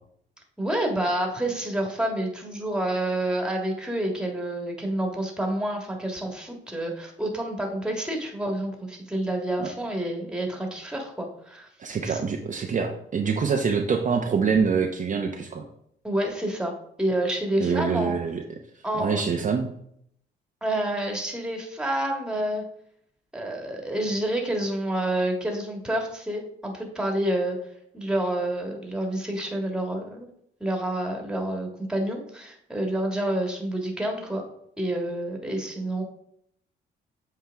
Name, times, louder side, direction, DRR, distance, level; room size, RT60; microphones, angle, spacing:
voice 1, 0.6-11.7 12.0-12.2 16.0-18.2 18.8-19.3 20.6-22.6 23.3-27.6 27.9-30.3 30.6-34.4 34.8-36.0, right 1 dB, 5° right, 1 dB, 1.6 m, -28 dB
voice 2, 11.8-15.6 17.6-18.4 18.9-19.7, right 5 dB, 40° right, 2 dB, 0.7 m, -25 dB
7.6 x 4.5 x 3.5 m, 0.71 s
cardioid pair, 90°, 20 cm